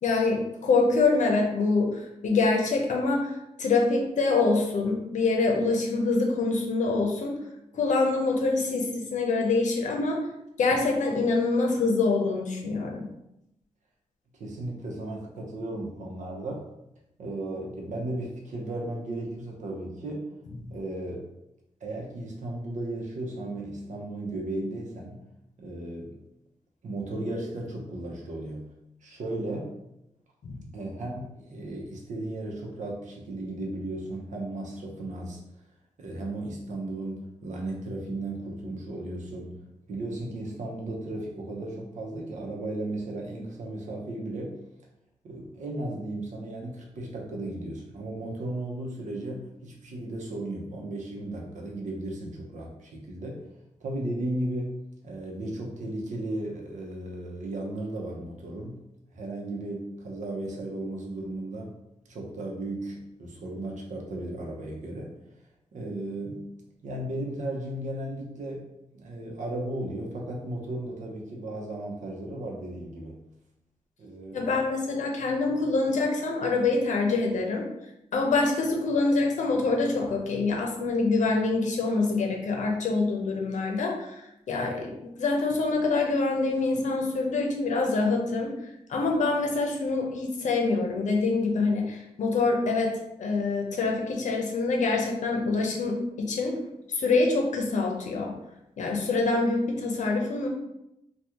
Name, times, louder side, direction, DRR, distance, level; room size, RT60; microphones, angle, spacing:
voice 1, 0.0-3.3 3.6-7.3 7.7-10.3 10.6-13.1 30.4-30.6 74.3-77.7 78.1-88.5 88.9-96.5 96.9-98.3 98.8-100.5, left 3 dB, 80° left, 1 dB, 0.7 m, -25 dB
voice 2, 14.4-16.6 17.2-20.3 20.7-21.2 21.8-25.2 25.6-26.2 26.8-28.7 29.0-29.7 30.7-35.4 36.0-39.5 39.9-44.6 45.2-53.4 53.8-54.8 55.0-58.8 59.1-61.7 62.1-65.1 65.7-66.4 66.8-68.7 68.9-73.2 74.0-74.4, right 1 dB, 85° right, -1 dB, 0.8 m, -35 dB
3.5 x 2.3 x 2.9 m, 0.85 s
wide cardioid pair, 150°, 12 cm